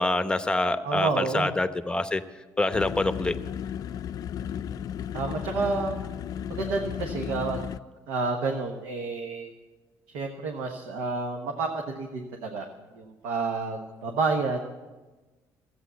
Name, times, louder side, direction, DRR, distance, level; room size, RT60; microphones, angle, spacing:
voice 1, 0.0-2.2 2.6-3.3, left 2 dB, 10° left, 10 dB, 0.9 m, -26 dB
voice 2, 0.8-1.5 5.1-5.9 6.4-7.7 8.1-9.5 10.1-12.7 12.9-14.7, right 4 dB, 80° right, 2 dB, 1.3 m, -29 dB
sound 1, 2.7-7.8, left 9 dB, 55° left, 0.4 m, -34 dB
13.5 x 8.6 x 8.2 m, 1.2 s
supercardioid pair, 75°, 7 cm